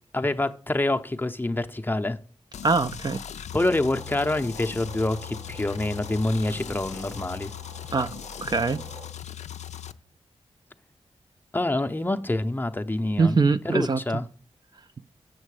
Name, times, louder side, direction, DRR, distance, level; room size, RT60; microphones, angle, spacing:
voice 1, 0.1-2.2 3.5-7.5 11.5-14.2, left 2 dB, 15° left, 0.6 m, -26 dB
sound 1, 2.5-9.9, left 10 dB, 90° left, 0.4 m, -39 dB
voice 2, 2.6-3.2 7.9-8.1 8.4-8.8 13.2-14.0, right 4 dB, 35° right, 0.4 m, -23 dB
sound 2, 3.9-9.1, right 3 dB, 80° right, 2.0 m, -47 dB
7.5 x 6.3 x 4.8 m
cardioid pair, 60°, 11 cm